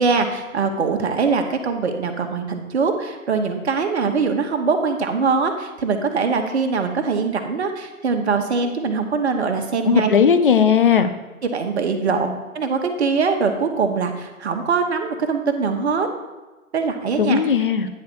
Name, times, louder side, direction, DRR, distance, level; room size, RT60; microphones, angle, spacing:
voice 1, 0.0-10.1 11.4-12.3 12.5-16.1 16.7-17.4, right 5 dB, 50° right, 6 dB, 1.0 m, -22 dB
voice 2, 9.8-11.1 12.1-12.3 17.2-17.9, left 7 dB, 40° left, 9 dB, 0.5 m, -17 dB
9.6 x 3.5 x 6.1 m, 1.2 s
figure-of-eight pair, 145°, 43 cm